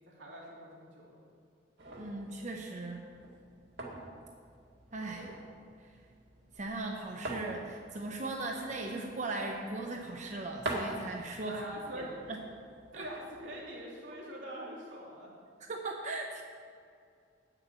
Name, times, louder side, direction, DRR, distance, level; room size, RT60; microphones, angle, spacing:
voice 1, 0.1-1.2 11.5-12.1 12.9-15.3, equal, 90° right, -4 dB, 2.6 m, -44 dB
sound 1, 1.8-13.6, right 2 dB, 70° right, 1.7 m, -45 dB
voice 2, 2.0-3.0 4.9-5.3 5.8-5.9 6.5-11.7 11.9-12.4 12.9-13.1 15.6-16.4, right 2 dB, 40° right, 2 dB, 0.7 m, -38 dB
8.6 x 6.9 x 6.9 m, 2.3 s
head